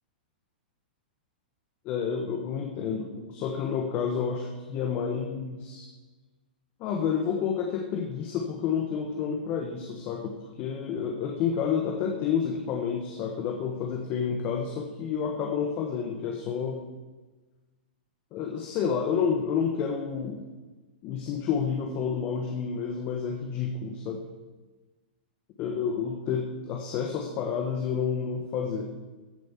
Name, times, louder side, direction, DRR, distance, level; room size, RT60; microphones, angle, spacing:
voice 1, 1.8-5.9 6.8-16.8 18.3-20.5 21.0-24.2 25.6-28.9, left 6 dB, 30° left, 2 dB, 1.2 m, -30 dB
15.0 x 5.2 x 7.2 m, 1.3 s
hypercardioid pair, 150°, 5 cm